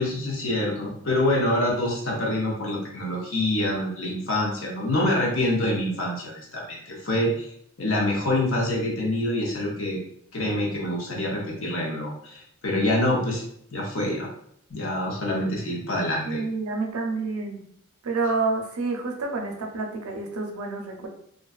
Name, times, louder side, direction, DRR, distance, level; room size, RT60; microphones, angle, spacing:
voice 1, 0.0-7.5 7.8-10.0 10.3-13.4 13.7-14.3 14.7-16.4, left 1 dB, 65° left, -2 dB, 0.7 m, -26 dB
voice 2, 16.2-17.6 18.0-21.1, right 3 dB, 75° right, 3 dB, 0.5 m, -28 dB
2.5 x 2.3 x 2.3 m, 0.68 s
head